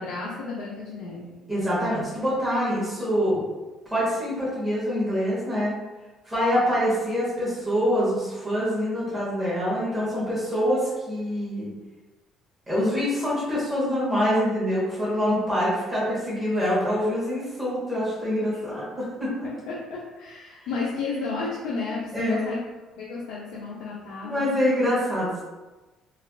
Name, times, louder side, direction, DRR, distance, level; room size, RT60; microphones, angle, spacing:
voice 1, 0.0-1.4 18.5-18.6 19.4-22.6 23.0-24.5, left 4 dB, 75° left, -5 dB, 0.5 m, -33 dB
voice 2, 1.5-3.4 3.9-5.8 6.2-11.7 12.7-19.5 22.1-22.6 24.2-25.4, equal, 10° right, -10 dB, 1.1 m, -25 dB
4.0 x 2.4 x 2.3 m, 1.2 s
cardioid pair, 165°, 0 cm